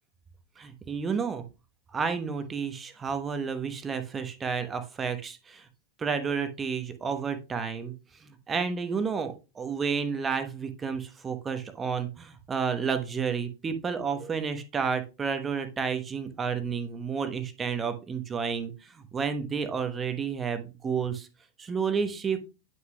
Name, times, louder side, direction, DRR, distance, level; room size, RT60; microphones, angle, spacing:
voice 1, 0.6-1.4 1.9-5.7 6.0-7.9 8.2-21.3 21.6-22.4, right 6 dB, 20° right, 9 dB, 1.0 m, -31 dB
9.3 x 5.8 x 2.3 m, 0.29 s
figure-of-eight pair, 90°, 0 cm